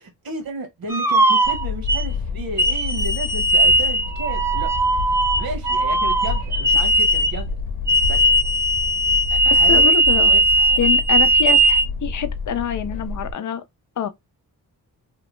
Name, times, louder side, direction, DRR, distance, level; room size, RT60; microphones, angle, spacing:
voice 1, 0.0-4.7 5.1-7.5 8.1-8.3 9.3-10.8, right 2 dB, 75° right, 1.2 m, -33 dB
sound 1, 0.9-2.1 2.6-7.4 7.9-11.9, right 1 dB, 10° right, 0.3 m, -18 dB
sound 2, 1.4-13.3, left 4 dB, 85° left, 0.8 m, -29 dB
voice 2, 9.5-10.3 10.8-13.6 14.0-14.1, left 9 dB, 55° left, 0.5 m, -26 dB
2.9 x 2.1 x 3.0 m
wide cardioid pair, 110°, 36 cm